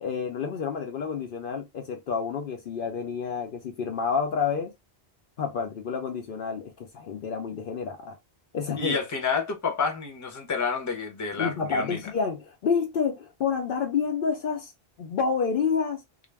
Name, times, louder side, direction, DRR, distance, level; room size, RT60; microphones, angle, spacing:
voice 1, 0.0-4.7 5.4-8.2 8.5-9.0 11.4-14.7 15.0-16.0, left 6 dB, 65° left, 0.7 m, -29 dB
voice 2, 8.8-12.0, left 5 dB, 20° left, 0.6 m, -29 dB
2.3 x 2.0 x 3.2 m
omnidirectional pair, 1.1 m